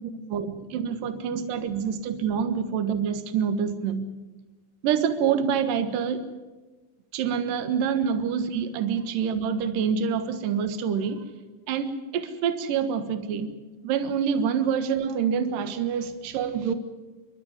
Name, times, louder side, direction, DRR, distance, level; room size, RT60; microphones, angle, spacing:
voice 1, 0.7-4.0 4.8-6.2 7.1-11.2 11.7-13.5 13.8-16.7, right 7 dB, 70° right, 9 dB, 2.2 m, -26 dB
28.5 x 12.5 x 9.7 m, 1.2 s
omnidirectional pair, 5.9 m